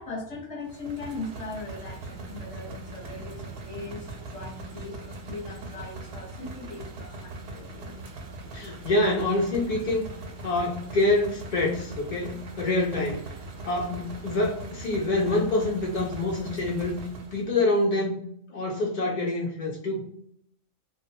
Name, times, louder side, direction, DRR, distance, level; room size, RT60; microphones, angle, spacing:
voice 1, 0.0-7.7, left 2 dB, 30° left, -3 dB, 0.7 m, -39 dB
sound 1, 0.6-17.5, right 2 dB, 60° right, 0.7 m, -41 dB
voice 2, 8.5-10.1 10.4-13.2 13.6-17.0 17.3-18.2 18.5-20.0, left 2 dB, 75° left, -2 dB, 0.4 m, -26 dB
2.2 x 2.2 x 2.7 m, 0.69 s
omnidirectional pair, 1.4 m